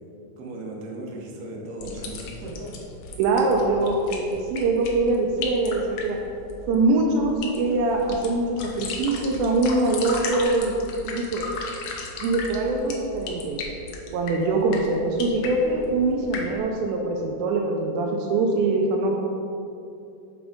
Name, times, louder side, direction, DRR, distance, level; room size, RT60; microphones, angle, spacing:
voice 1, 0.4-2.7, right 1 dB, 65° right, -1 dB, 1.7 m, -36 dB
sound 1, 1.8-16.6, left 3 dB, 75° left, 2.3 m, -36 dB
voice 2, 3.2-6.2 6.7-10.8 11.0-11.5 12.2-13.6 14.1-19.2, right 2 dB, 90° right, 1 dB, 2.4 m, -23 dB
7.0 x 4.8 x 5.0 m, 2.8 s
omnidirectional pair, 4.1 m